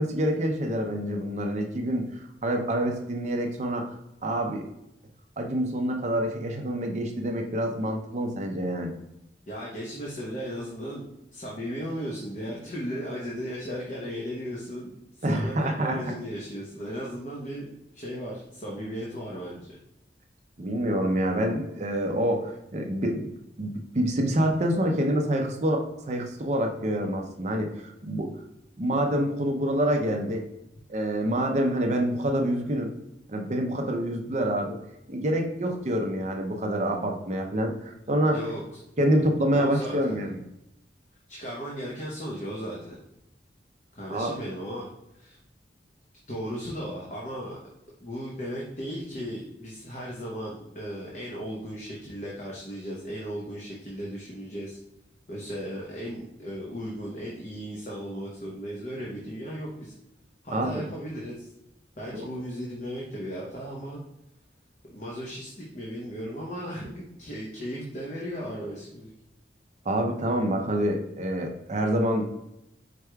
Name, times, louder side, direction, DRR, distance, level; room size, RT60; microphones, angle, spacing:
voice 1, 0.0-3.9 4.2-4.7 5.4-8.9 15.2-16.0 20.6-23.2 23.6-28.3 28.8-30.4 30.9-32.9 33.3-34.8 35.1-38.4 39.0-40.4 44.1-44.4 60.5-60.8 62.1-62.3 69.9-72.2, right 1 dB, 40° right, 3 dB, 0.6 m, -27 dB
voice 2, 9.5-11.1 11.3-17.7 17.9-19.8 38.2-38.8 39.5-40.2 41.3-43.0 43.9-44.9 45.1-45.4 46.3-47.6 48.0-54.8 55.3-59.9 60.4-61.5 62.0-64.0 64.9-69.1, equal, 40° left, -4 dB, 0.9 m, -36 dB
4.8 x 4.6 x 2.3 m, 0.85 s
head